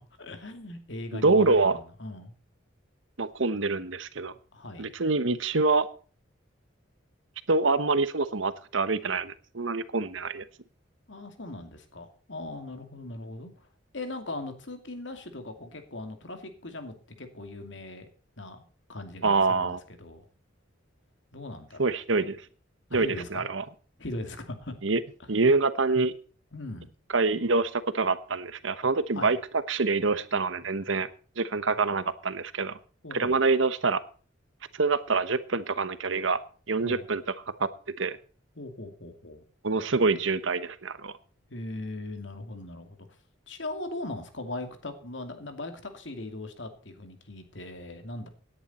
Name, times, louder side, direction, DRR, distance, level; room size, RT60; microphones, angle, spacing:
voice 1, 0.2-2.3 4.5-4.9 11.1-13.5 13.9-18.1 18.4-20.2 21.3-21.9 22.9-23.5 24.0-24.7 25.2-25.3 26.5-26.9 29.1-29.3 33.0-33.4 36.8-37.0 38.6-39.4 41.5-43.0 43.5-48.3, left 2 dB, 65° left, 6 dB, 2.6 m, -39 dB
voice 2, 1.1-1.8 3.2-4.3 4.8-5.9 7.5-10.4 19.2-19.8 21.8-22.4 22.9-23.6 24.8-25.0 25.3-26.1 27.1-29.4 29.7-31.1 31.4-32.8 33.1-34.0 34.8-36.4 36.7-37.2 37.6-37.7 38.0-38.2 39.6-41.1, right 3 dB, 70° right, 14 dB, 1.0 m, -25 dB
17.5 x 10.0 x 4.3 m, 0.39 s
head